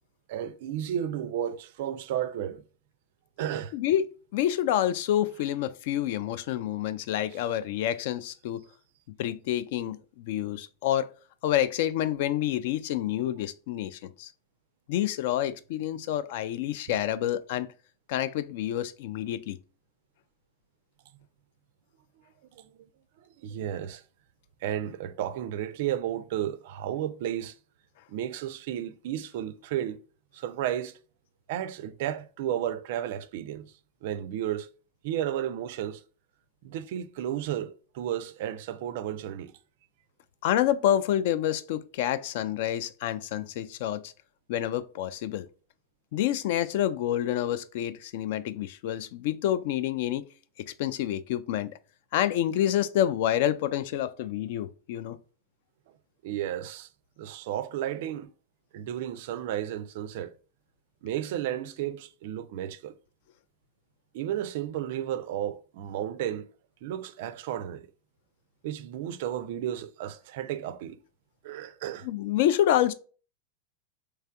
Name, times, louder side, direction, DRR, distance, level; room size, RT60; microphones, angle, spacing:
voice 1, 0.3-2.6 3.4-3.7 7.3-7.4 22.5-22.7 23.2-24.0 24.6-27.6 28.1-30.0 30.3-31.0 31.5-33.7 34.0-34.7 35.0-36.0 36.6-39.5 56.2-56.9 57.2-58.3 58.7-60.3 61.0-63.0 64.1-66.5 66.8-67.9 68.6-71.0 71.4-72.1, right 11 dB, 50° right, 0.3 m, -33 dB
voice 2, 3.7-4.0 4.3-8.6 9.2-11.1 11.4-14.3 14.9-17.7 18.1-19.6 40.4-44.1 44.5-45.5 46.1-50.2 50.7-51.7 52.1-55.2 72.0-72.9, left 11 dB, 50° left, 0.3 m, -28 dB
3.2 x 3.2 x 2.2 m
figure-of-eight pair, 90°, 0 cm